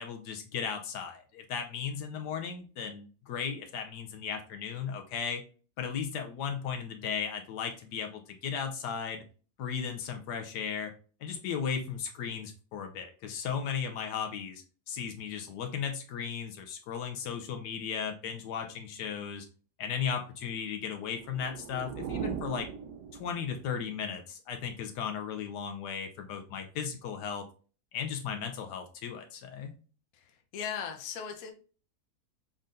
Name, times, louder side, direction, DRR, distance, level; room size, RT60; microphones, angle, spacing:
voice 1, 0.0-5.4 5.8-9.2 9.6-10.9 11.2-19.5 19.8-22.7 23.1-27.4 27.9-29.7, left 7 dB, 80° left, 6 dB, 1.3 m, -36 dB
sound 1, 21.0-23.7, right 7 dB, 85° right, 1.2 m, -39 dB
voice 2, 30.1-31.5, left 7 dB, 65° left, 5 dB, 1.1 m, -38 dB
5.5 x 3.7 x 2.5 m, 0.37 s
omnidirectional pair, 1.8 m